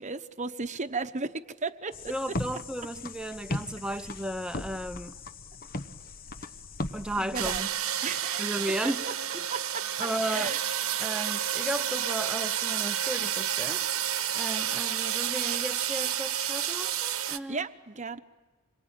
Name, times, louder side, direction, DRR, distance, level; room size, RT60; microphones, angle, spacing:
voice 1, 0.0-2.4 7.2-7.6 8.0-8.6 9.5-9.8 10.2-10.6 17.5-18.2, right 4 dB, 35° right, 10 dB, 1.0 m, -35 dB
sound 1, 1.9-7.6, left 2 dB, 45° left, 0.9 m, -38 dB
voice 2, 2.1-5.1 6.9-7.7 8.4-9.0 10.0-10.5 11.0-13.8 14.3-17.7, right 1 dB, 5° right, 9 dB, 0.8 m, -34 dB
sound 2, 7.3-17.4, right 10 dB, 70° right, 1.2 m, -30 dB
27.0 x 23.0 x 9.0 m, 1.3 s
head